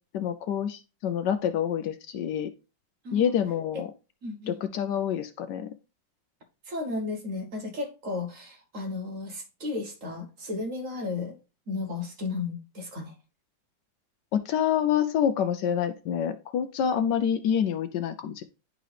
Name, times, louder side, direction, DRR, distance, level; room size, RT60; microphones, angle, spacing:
voice 1, 0.1-2.5 3.1-3.9 4.5-5.7 14.3-18.4, left 9 dB, 75° left, 1.1 m, -27 dB
voice 2, 4.2-4.6 6.7-11.3 11.7-13.1, left 3 dB, 45° right, 1.4 m, -34 dB
10.5 x 3.7 x 3.3 m
omnidirectional pair, 2.1 m